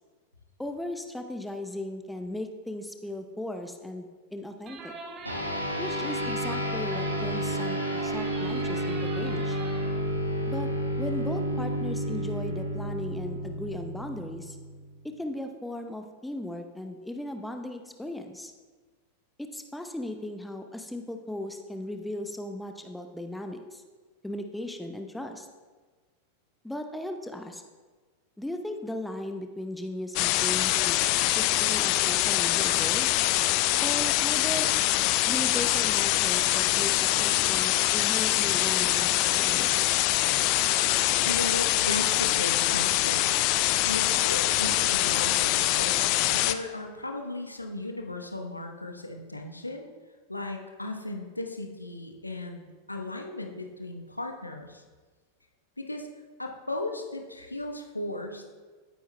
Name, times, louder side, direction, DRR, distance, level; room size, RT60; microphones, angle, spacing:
voice 1, 0.6-4.9 5.8-9.6 10.5-10.7 11.0-14.6 15.2-18.5 19.4-23.8 24.2-25.5 26.6-27.6 28.4-33.2 33.8-34.7 35.3-39.7, left 1 dB, 5° left, 5 dB, 0.7 m, -37 dB
sound 1, 4.7-10.0, right 3 dB, 30° right, 1.0 m, -43 dB
sound 2, 5.3-15.0, equal, 85° right, 1.4 m, -31 dB
sound 3, 30.2-46.5, left 15 dB, 45° left, 0.4 m, -24 dB
voice 2, 41.2-43.4 43.8-45.9 46.3-49.9 50.3-54.8 55.8-56.1 56.4-58.4, left 2 dB, 85° left, 3 dB, 1.0 m, -36 dB
16.0 x 9.5 x 2.2 m, 1.4 s
figure-of-eight pair, 90°, 0 cm